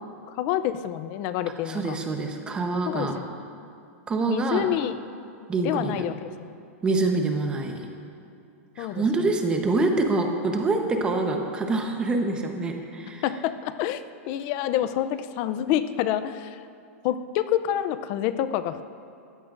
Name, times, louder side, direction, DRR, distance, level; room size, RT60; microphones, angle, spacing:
voice 1, 0.3-2.0 2.9-3.3 4.3-5.0 5.6-6.5 8.8-9.0 13.2-16.6 17.0-18.8, left 11 dB, 30° left, 12 dB, 0.5 m, -27 dB
voice 2, 1.7-3.2 4.1-4.8 5.5-6.1 6.8-7.8 8.8-13.2, right 3 dB, 10° right, 3 dB, 1.0 m, -26 dB
21.5 x 15.0 x 2.6 m, 2.6 s
supercardioid pair, 165°, 8 cm